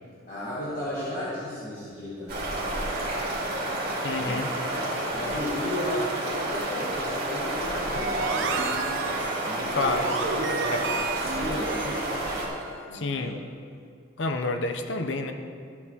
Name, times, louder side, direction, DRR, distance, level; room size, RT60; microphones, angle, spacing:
voice 1, 0.3-2.9 3.1-3.3 4.1-8.6 9.4-10.1 10.4-12.0 12.9-13.3, left 1 dB, 40° left, -11 dB, 2.0 m, -34 dB
sound 1, 2.3-12.5, right 1 dB, 50° right, 2.3 m, -30 dB
voice 2, 4.0-4.5 9.7-10.0 10.7-10.9 12.9-13.4 14.2-15.3, left 3 dB, 65° left, 5 dB, 0.8 m, -29 dB
sound 2, 7.9-12.8, right 4 dB, 75° right, 0.7 m, -32 dB
14.0 x 8.5 x 2.9 m, 2.2 s
head